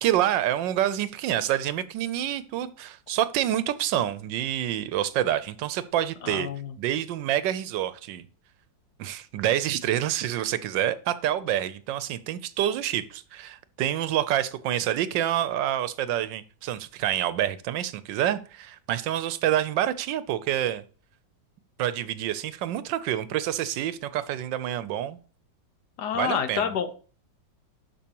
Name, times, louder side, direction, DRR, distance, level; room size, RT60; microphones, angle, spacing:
voice 1, 0.0-6.5 6.8-8.2 9.0-20.8 21.8-25.2 26.1-26.7, right 11 dB, 80° right, 14 dB, 1.3 m, -27 dB
voice 2, 6.2-6.7 26.0-26.9, left 8 dB, 65° left, 10 dB, 1.3 m, -28 dB
12.0 x 4.9 x 2.9 m, 0.39 s
omnidirectional pair, 2.0 m